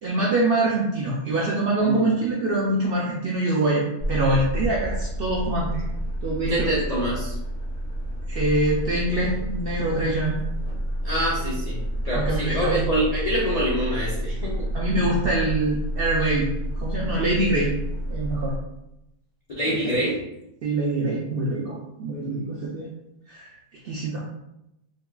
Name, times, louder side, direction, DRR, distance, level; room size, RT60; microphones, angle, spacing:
voice 1, 0.0-5.8 6.2-6.7 8.3-10.4 12.1-12.8 14.7-16.5 16.8-17.7 18.1-18.6 19.7-19.9 20.6-22.9 23.3-23.5 23.8-24.2, right 2 dB, 70° right, -4 dB, 0.5 m, -24 dB
voice 2, 1.8-2.1 6.5-7.4 11.0-14.7 19.6-20.2, equal, 70° left, -5 dB, 0.3 m, -25 dB
sound 1, 4.0-18.5, right 1 dB, 5° left, 0.6 m, -29 dB
3.7 x 2.2 x 2.2 m, 0.86 s
omnidirectional pair, 1.4 m